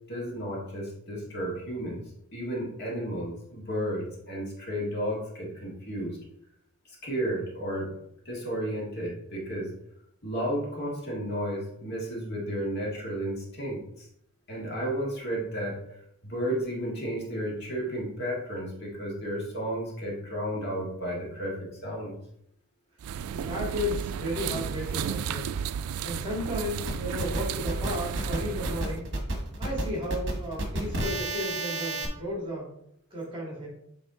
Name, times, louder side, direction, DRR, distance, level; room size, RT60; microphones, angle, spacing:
voice 1, 0.1-2.0 2.3-6.2 6.9-7.9 8.3-9.7 10.2-14.1 14.5-22.2, equal, 50° left, -3 dB, 1.8 m, -33 dB
sound 1, 23.0-29.0, right 8 dB, 80° right, 0.3 m, -33 dB
voice 2, 23.3-25.5 26.0-29.1 29.6-32.7 33.1-33.7, left 1 dB, 20° right, -3 dB, 1.9 m, -34 dB
sound 2, 26.9-32.1, right 1 dB, 55° right, 1.2 m, -31 dB
8.0 x 3.3 x 3.7 m, 0.74 s
head